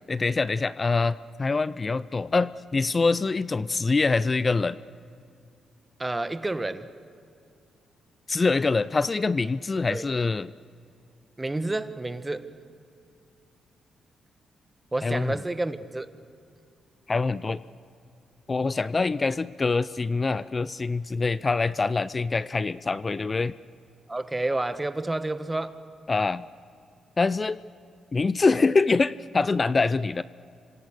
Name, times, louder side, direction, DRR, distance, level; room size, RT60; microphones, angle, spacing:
voice 1, 0.1-4.8 8.3-10.5 15.0-15.4 17.1-17.6 18.5-23.5 26.1-26.4 27.2-27.6 28.1-30.2, left 4 dB, 35° left, 16 dB, 0.5 m, -25 dB
voice 2, 6.0-6.9 9.9-10.1 11.4-12.5 14.9-16.1 24.1-25.8, right 2 dB, 20° right, 11 dB, 1.4 m, -29 dB
27.5 x 25.5 x 6.7 m, 2.5 s
supercardioid pair, 60°, 0 cm